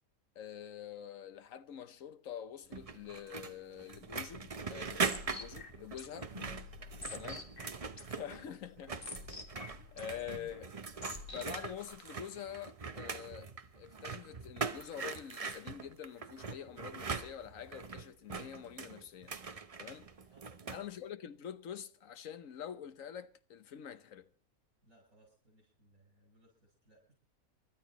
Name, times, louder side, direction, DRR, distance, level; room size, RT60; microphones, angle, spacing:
voice 1, 0.3-6.3 7.1-7.4 8.1-9.0 9.9-10.7 11.3-19.4 19.8-20.1 20.7-24.3, left 9 dB, 65° left, 1.3 m, -46 dB
sound 1, 2.7-8.5 8.8-20.9, right 5 dB, 30° right, 0.7 m, -42 dB
sound 2, 4.0-11.9, left 3 dB, 40° left, 1.9 m, -49 dB
voice 2, 7.9-8.5 9.8-10.1 20.3-20.7 24.8-27.1, right 2 dB, 65° right, 7.7 m, -67 dB
29.5 x 12.5 x 3.0 m
omnidirectional pair, 1.5 m